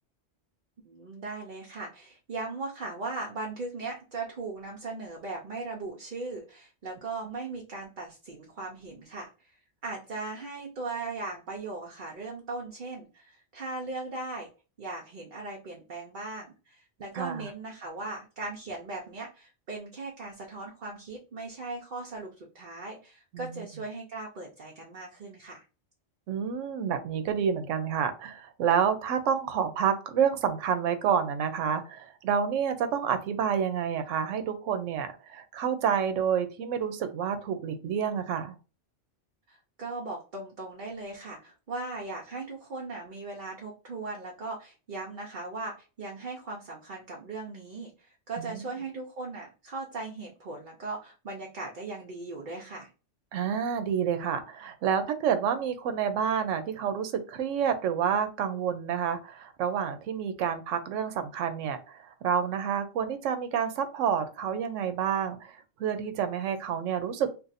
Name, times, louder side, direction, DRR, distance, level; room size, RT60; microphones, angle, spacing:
voice 1, 0.8-9.5 9.8-14.5 14.8-25.6 39.5-52.9, right 3 dB, 50° right, -1 dB, 0.7 m, -38 dB
voice 2, 17.2-17.5 23.3-23.7 26.3-38.6 48.4-48.5 53.3-65.5 65.8-67.3, right 7 dB, 85° right, 8 dB, 0.9 m, -29 dB
2.5 x 2.5 x 4.0 m, 0.33 s
omnidirectional pair, 1.2 m